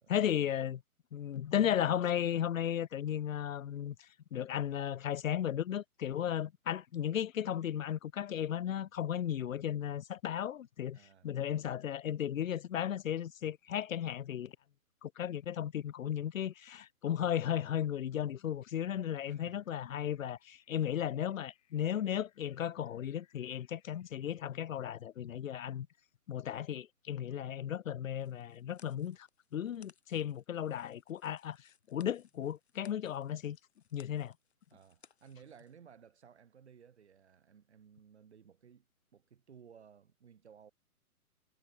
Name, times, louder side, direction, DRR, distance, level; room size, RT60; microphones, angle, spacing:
voice 1, 0.1-0.8 1.1-11.0 11.2-14.6 15.0-25.9 26.3-33.6 33.9-34.3, left 10 dB, 60° left, 0.5 m, -35 dB
voice 2, 10.9-11.3 19.3-19.7 34.7-38.9 39.1-40.7, right 7 dB, 45° right, 4.8 m, -58 dB
sound 1, 19.5-24.4, left 13 dB, 25° left, 4.0 m, -74 dB
sound 2, 28.2-35.7, left 7 dB, 45° left, 2.3 m, -66 dB
hypercardioid pair, 170°, 45 cm